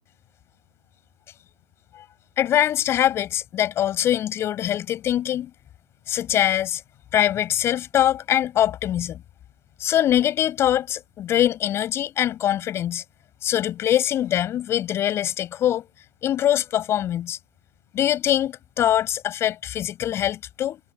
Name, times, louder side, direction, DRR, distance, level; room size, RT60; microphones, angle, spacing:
voice 1, 2.4-5.5 6.1-6.8 7.1-9.2 9.8-13.0 13.4-15.9 16.2-17.4 17.9-20.8, left 11 dB, 5° left, 7.8 m, -23 dB
figure-of-eight pair, 160°, 41 cm